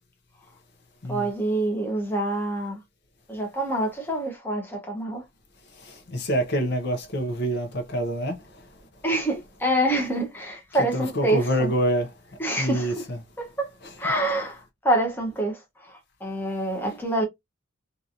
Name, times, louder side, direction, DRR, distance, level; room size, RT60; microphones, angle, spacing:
voice 1, 1.1-2.8 3.3-5.2 9.0-11.7 12.4-12.9 13.4-13.7 14.0-17.2, right 1 dB, 10° left, 0.8 m, -26 dB
voice 2, 5.8-8.3 10.9-12.1 12.6-13.2 13.8-13.9, equal, 55° left, 0.8 m, -26 dB
2.9 x 2.5 x 2.5 m
head